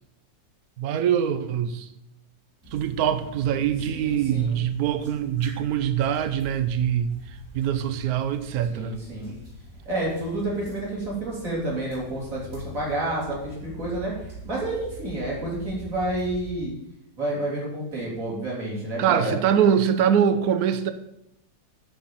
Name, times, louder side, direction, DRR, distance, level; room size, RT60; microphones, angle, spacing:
voice 1, 0.8-1.9 2.7-7.1 7.5-8.9 19.0-20.9, right 9 dB, 65° right, 1.1 m, -23 dB
sound 1, 2.6-16.5, right 1 dB, 15° right, 1.3 m, -44 dB
voice 2, 3.8-4.6 8.7-9.3 9.8-16.7 17.2-19.4, right 1 dB, 45° right, 3.5 m, -29 dB
9.5 x 4.3 x 7.2 m
omnidirectional pair, 2.0 m